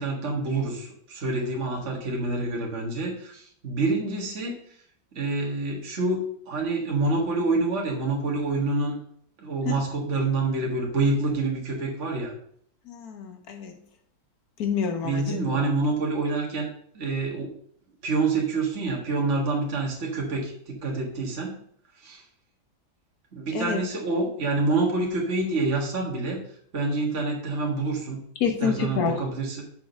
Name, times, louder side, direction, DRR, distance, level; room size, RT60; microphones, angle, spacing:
voice 1, 0.0-4.5 5.1-9.0 9.4-12.3 15.0-17.5 18.0-21.6 22.0-22.2 23.3-26.4 26.7-29.6, right 3 dB, 40° right, -1 dB, 1.9 m, -27 dB
voice 2, 12.9-13.7 14.6-15.4 23.5-23.8 28.4-29.2, left 6 dB, 55° left, 5 dB, 1.5 m, -27 dB
6.9 x 4.7 x 6.5 m, 0.62 s
omnidirectional pair, 2.1 m